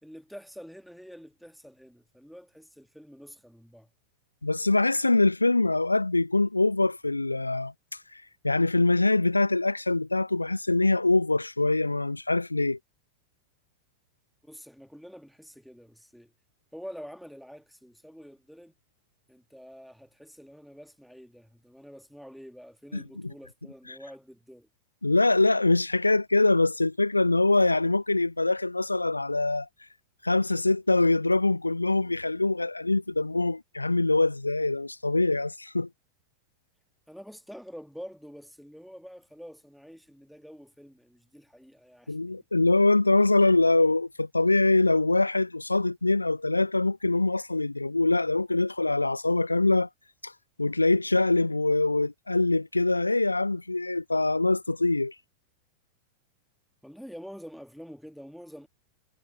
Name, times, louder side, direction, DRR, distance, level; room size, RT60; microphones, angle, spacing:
voice 1, 0.0-3.9 14.4-16.3 16.7-18.7 19.3-24.7 37.1-42.3 56.8-58.7, equal, ahead, 1.5 m, -47 dB
voice 2, 4.4-7.7 8.1-12.8 22.9-23.0 25.0-29.7 30.2-35.9 42.1-49.9 50.2-50.3 50.6-55.1, left 2 dB, 85° left, 0.4 m, -24 dB
figure-of-eight pair, 90°, 0 cm